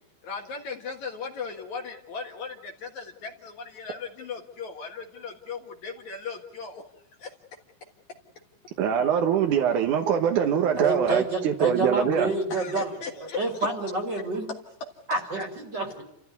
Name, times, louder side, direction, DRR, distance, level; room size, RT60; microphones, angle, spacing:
voice 1, 0.2-6.8 7.2-7.3 12.5-13.4, left 5 dB, 55° left, 2.6 m, -37 dB
voice 2, 8.8-12.3, right 8 dB, 65° right, 2.3 m, -23 dB
voice 3, 10.8-12.9 13.2-14.5 15.1-16.0, right 2 dB, 30° right, 2.9 m, -28 dB
30.0 x 14.5 x 9.5 m
omnidirectional pair, 4.6 m